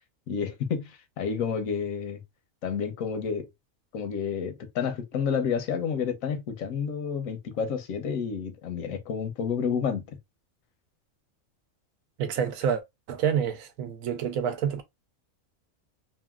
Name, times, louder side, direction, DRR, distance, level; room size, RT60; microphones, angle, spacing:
voice 1, 0.3-2.2 2.6-3.5 3.9-10.0, left 6 dB, 90° left, 1.1 m, -30 dB
voice 2, 12.2-12.8 13.1-14.8, right 8 dB, 90° right, 1.1 m, -28 dB
2.9 x 2.6 x 2.3 m
omnidirectional pair, 1.4 m